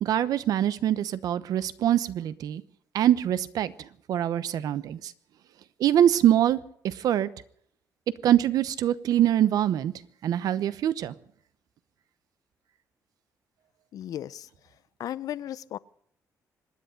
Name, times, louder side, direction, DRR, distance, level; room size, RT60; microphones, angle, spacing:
voice 1, 0.0-2.6 2.9-5.1 5.8-6.6 6.8-7.3 8.2-9.9 10.2-11.1, right 11 dB, 75° right, 15 dB, 0.9 m, -24 dB
voice 2, 13.9-14.5 15.0-15.8, left 11 dB, 70° left, 18 dB, 0.6 m, -35 dB
26.0 x 10.5 x 5.2 m, 0.66 s
cardioid pair, 140°, 6 cm